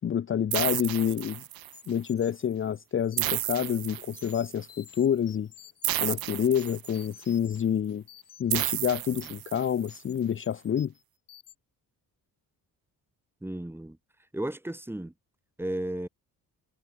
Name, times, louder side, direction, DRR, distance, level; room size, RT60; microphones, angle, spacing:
voice 1, 0.0-1.4 1.9-5.5 6.0-8.0 8.4-10.9, left 8 dB, 35° left, 0.7 m, -28 dB
sound 1, 0.5-1.9 3.2-4.5 5.8-7.2 8.5-9.9, right 14 dB, 75° right, 1.1 m, -32 dB
sound 2, 1.7-3.5 4.0-6.2 6.6-7.6 7.9-9.5 9.8-10.1 10.4-11.0 11.3-11.6, left 10 dB, 65° left, 4.7 m, -53 dB
voice 2, 13.4-14.0 14.3-15.1 15.6-16.1, right 1 dB, 5° right, 2.1 m, -34 dB
cardioid pair, 130°, 36 cm